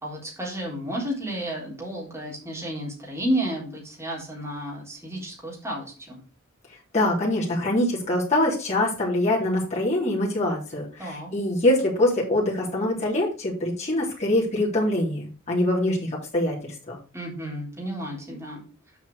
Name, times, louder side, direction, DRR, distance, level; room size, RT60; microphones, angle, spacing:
voice 1, 0.0-6.2 11.0-11.3 17.1-18.6, right 1 dB, 10° right, -4 dB, 3.9 m, -32 dB
voice 2, 6.9-17.0, left 1 dB, 30° left, -5 dB, 3.3 m, -24 dB
7.6 x 5.6 x 4.9 m, 0.36 s
head